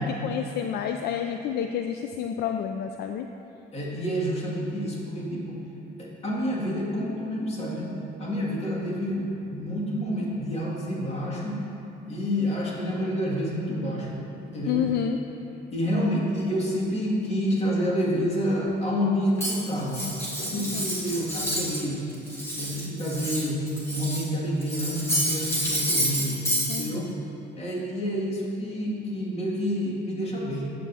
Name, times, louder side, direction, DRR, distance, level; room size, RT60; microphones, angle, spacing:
voice 1, 0.0-3.3 14.7-15.2 20.5-20.8 26.7-27.1, left 8 dB, 60° left, 6 dB, 0.4 m, -29 dB
voice 2, 3.7-5.6 6.0-7.9 8.2-11.6 12.1-14.1 14.5-14.8 15.7-20.0 20.4-22.0 22.5-26.4 26.8-27.1 27.6-30.7, equal, 35° left, -5 dB, 2.1 m, -28 dB
Cutlery silverware, 19.4-21.9 22.1-24.3 24.6-26.8, equal, 15° left, 1.7 m, -29 dB
14.5 x 8.2 x 2.7 m, 3.0 s
cardioid pair, 140°, 19 cm